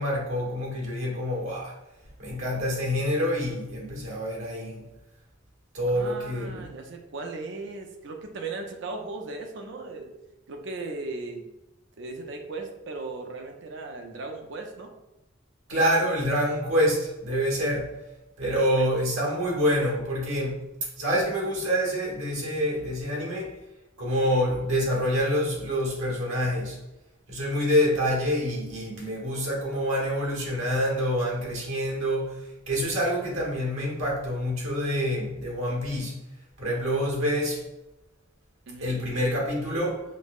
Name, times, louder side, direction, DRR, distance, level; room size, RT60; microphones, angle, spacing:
voice 1, 0.0-1.7 2.2-4.9 5.7-6.6 15.7-17.9 18.4-20.6 21.0-23.5 24.0-26.8 27.3-32.4 32.7-36.2 36.6-37.6 38.8-40.0, equal, 85° right, 1.1 m, -26 dB
voice 2, 5.9-10.1 10.5-11.5 12.0-14.9 18.4-18.9 38.7-38.9, right 3 dB, 60° right, 0.5 m, -37 dB
5.2 x 2.0 x 2.4 m
head